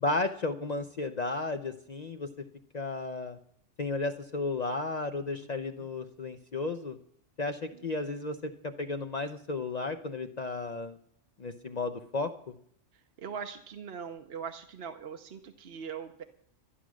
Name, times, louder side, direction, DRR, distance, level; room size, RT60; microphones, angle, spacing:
voice 1, 0.0-2.3 2.7-3.4 3.8-7.0 7.4-11.0 11.4-12.3, left 3 dB, 45° left, 7 dB, 0.6 m, -33 dB
voice 2, 5.4-5.9 7.7-7.8 13.2-16.2, right 7 dB, 60° right, 6 dB, 1.0 m, -41 dB
11.5 x 11.5 x 6.2 m, 0.65 s
omnidirectional pair, 1.2 m